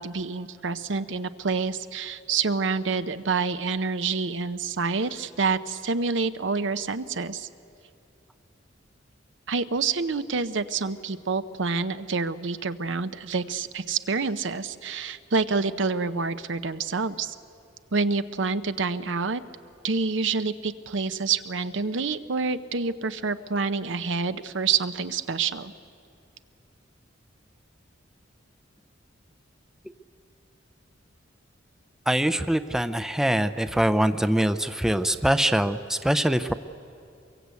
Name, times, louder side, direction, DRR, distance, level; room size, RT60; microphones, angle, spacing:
voice 1, 0.0-7.5 9.5-17.3 17.9-19.4 19.8-25.7, right 4 dB, 70° right, 12 dB, 0.7 m, -27 dB
voice 2, 32.1-36.5, right 1 dB, 5° right, 11 dB, 0.5 m, -23 dB
23.0 x 23.0 x 8.3 m, 2.6 s
head